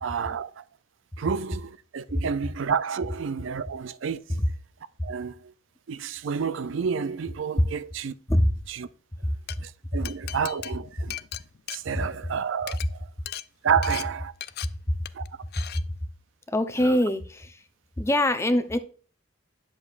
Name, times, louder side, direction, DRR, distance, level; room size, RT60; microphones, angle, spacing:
voice 1, 0.0-0.6 1.2-4.4 5.0-5.5 5.9-8.1 8.7-8.9 9.6-11.2 11.7-13.1 13.6-14.3 15.1-15.2 16.8-17.0, right 6 dB, 70° right, 0.4 m, -30 dB
Glass, 9.3-9.6 10.0-12.3 12.6-12.9 13.3-13.4 13.8-14.0 14.4-14.7 15.0-15.3 15.5-15.8, left 12 dB, 55° left, 0.4 m, -37 dB
voice 2, 16.5-17.6 18.0-18.8, left 1 dB, 15° left, 0.7 m, -24 dB
10.0 x 7.0 x 2.4 m
head